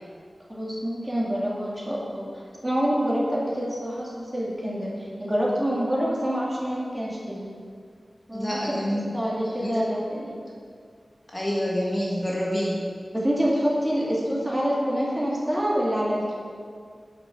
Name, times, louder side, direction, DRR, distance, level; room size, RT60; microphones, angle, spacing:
voice 1, 0.5-2.3 2.6-4.9 5.2-7.5 8.3-8.6 9.1-10.4 13.1-16.3, equal, 15° right, -6 dB, 3.1 m, -26 dB
voice 2, 8.3-9.2 9.4-9.8 11.3-12.8, equal, 25° left, -5 dB, 1.8 m, -27 dB
10.5 x 6.7 x 7.3 m, 2.1 s
wide cardioid pair, 90°, 0 cm